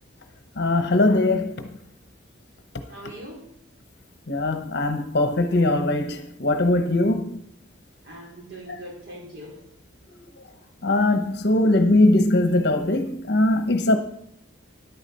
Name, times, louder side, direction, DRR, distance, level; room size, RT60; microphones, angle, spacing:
voice 1, 0.6-1.5 4.3-7.4 10.8-14.0, left 2 dB, 55° left, 0.8 m, -21 dB
voice 2, 2.9-3.4 8.0-9.7, right 1 dB, 65° right, 3.5 m, -41 dB
11.0 x 8.9 x 4.2 m
head